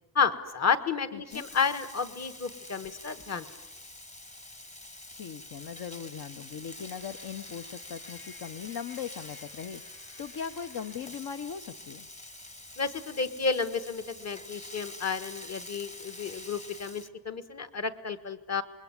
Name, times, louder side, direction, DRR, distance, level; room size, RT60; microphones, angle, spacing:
voice 1, 0.1-3.5 12.8-18.6, left 5 dB, 40° left, 9 dB, 1.5 m, -31 dB
voice 2, 1.1-1.5 5.1-9.8 10.2-12.1, left 7 dB, 60° left, 8 dB, 1.0 m, -39 dB
Frying (food), 1.3-17.1, left 1 dB, 15° left, 1.2 m, -46 dB
sound 1, 6.5-11.3, left 5 dB, 85° left, 4.7 m, -57 dB
27.0 x 22.0 x 9.8 m, 1.0 s
wide cardioid pair, 165°, 42 cm